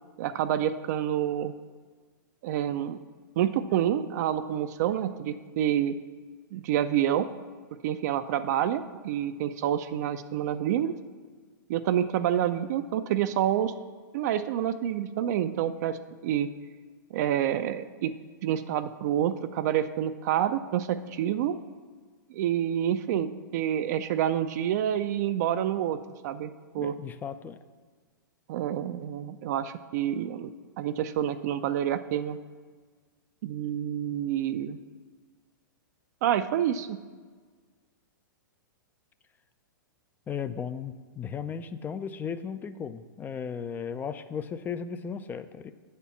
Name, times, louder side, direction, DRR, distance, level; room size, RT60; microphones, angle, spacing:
voice 1, 0.2-1.5 2.4-3.0 3.4-5.9 6.5-7.3 7.8-10.9 11.7-13.7 14.1-16.0 16.2-16.5 17.1-18.1 18.4-21.6 22.3-26.0 26.2-26.9 28.5-30.5 30.8-32.4 33.4-34.8 36.2-37.0, right 10 dB, 55° right, 10 dB, 0.4 m, -28 dB
voice 2, 26.8-27.6 40.3-45.7, left 7 dB, 15° left, 11 dB, 0.3 m, -36 dB
8.1 x 4.4 x 7.0 m, 1.5 s
hypercardioid pair, 115°, 11 cm